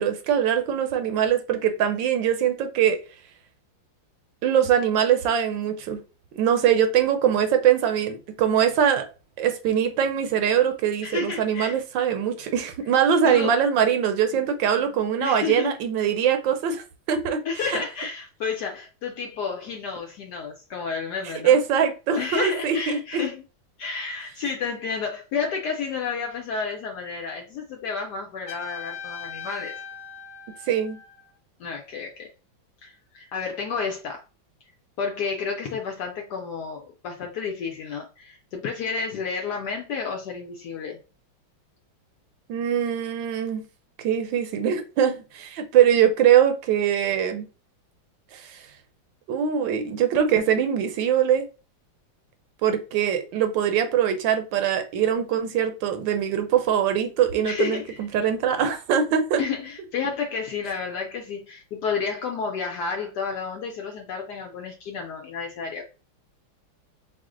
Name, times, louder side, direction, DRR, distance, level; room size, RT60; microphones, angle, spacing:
voice 1, 0.0-3.0 4.4-6.0 6.3-9.0 9.4-17.4 17.7-17.8 21.4-23.2 30.7-31.0 42.5-43.6 44.0-47.5 48.3-48.7 49.3-51.5 52.6-59.4, right 8 dB, 75° right, 1.3 m, -22 dB
voice 2, 11.0-11.8 13.2-13.6 15.2-15.7 17.4-21.6 22.1-23.4 23.8-29.8 31.6-32.3 32.8-34.2 35.0-41.0 57.4-58.0 59.4-65.8, left 5 dB, 70° left, 1.0 m, -31 dB
Trumpet, 28.5-31.3, left 7 dB, 40° left, 0.9 m, -39 dB
4.8 x 2.1 x 3.7 m
omnidirectional pair, 2.1 m